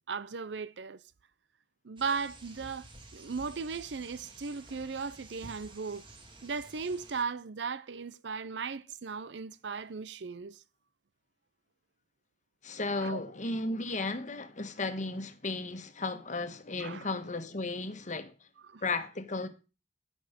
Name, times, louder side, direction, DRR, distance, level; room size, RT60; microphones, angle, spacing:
voice 1, 0.1-1.0 1.8-2.9 3.1-6.0 6.4-10.6 13.0-13.2 16.8-17.1 18.6-18.8, right 5 dB, 90° right, 0.6 m, -37 dB
sound 1, 2.0-7.2, right 2 dB, 30° right, 1.8 m, -52 dB
voice 2, 12.6-18.3 18.8-19.5, left 3 dB, 45° left, 1.3 m, -34 dB
10.0 x 8.7 x 5.2 m
head